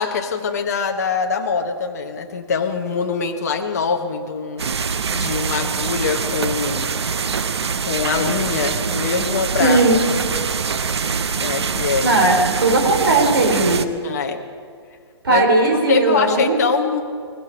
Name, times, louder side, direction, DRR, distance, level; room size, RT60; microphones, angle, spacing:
voice 1, 0.0-6.9 7.9-9.8 11.4-12.2 14.0-14.4 15.3-17.0, left 5 dB, 35° left, 3 dB, 1.1 m, -23 dB
sound 1, 4.6-13.9, right 5 dB, 70° right, 0.9 m, -24 dB
voice 2, 9.6-10.0 12.0-13.9 15.2-16.6, right 2 dB, 50° right, 1 dB, 3.5 m, -17 dB
20.0 x 16.0 x 4.5 m, 2.2 s
hypercardioid pair, 175°, 14 cm